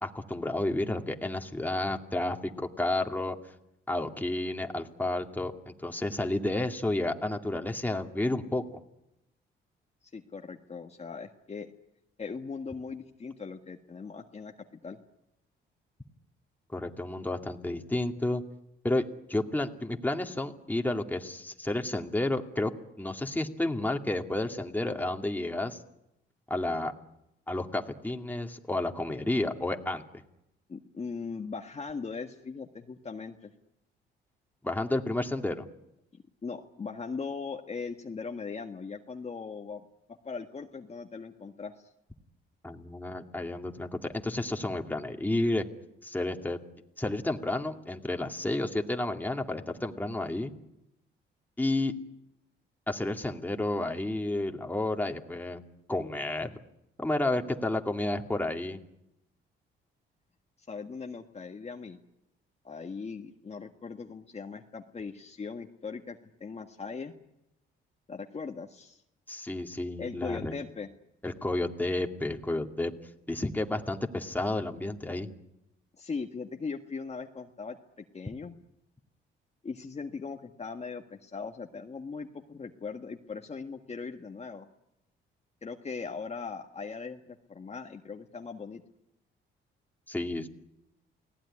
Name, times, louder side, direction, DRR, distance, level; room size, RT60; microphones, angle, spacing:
voice 1, 0.0-3.4 3.9-8.8 16.7-18.4 18.8-22.7 23.0-25.8 26.5-26.9 27.5-30.0 34.6-35.7 42.6-45.7 46.0-46.6 47.0-50.5 51.6-51.9 52.9-55.6 55.9-56.5 57.0-58.8 69.3-70.5 71.2-72.9 73.3-75.3 90.1-90.5, left 2 dB, 10° left, 4 dB, 2.3 m, -31 dB
voice 2, 10.1-11.7 12.2-14.5 14.8-15.0 30.7-33.5 36.4-39.9 40.2-41.9 60.7-62.0 62.6-67.1 68.1-69.0 70.0-70.9 76.0-77.8 78.1-78.6 79.6-84.7 85.6-88.8, left 5 dB, 35° left, 3 dB, 1.6 m, -39 dB
29.5 x 18.5 x 9.9 m, 0.88 s
cardioid pair, 90°, 20 cm